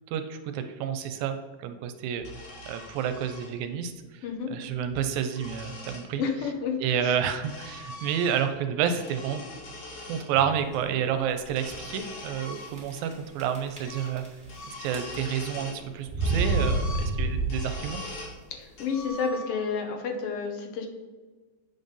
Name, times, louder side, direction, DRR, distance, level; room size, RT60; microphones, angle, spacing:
voice 1, 0.1-2.3 2.7-3.9 4.5-6.2 6.8-9.4 10.1-14.2 14.7-18.0, right 8 dB, 85° right, 8 dB, 2.0 m, -29 dB
sound 1, 2.2-3.5 4.7-6.1 7.0-8.6 8.9-10.3 11.4-13.1 13.4-13.5 13.8-14.2 14.4-15.8 16.2-18.4 18.8-19.7, left 1 dB, 80° left, 3.6 m, -42 dB
voice 2, 6.2-6.8 18.5-20.9, left 5 dB, 65° left, 3 dB, 1.6 m, -30 dB
sound 2, 10.3-10.7 11.4-11.5 11.7-11.8 12.7-13.1 13.4-14.5 14.8-15.4 16.1-18.0, right 2 dB, 5° right, 1.9 m, -28 dB
8.9 x 4.0 x 5.3 m, 1.3 s
omnidirectional pair, 3.4 m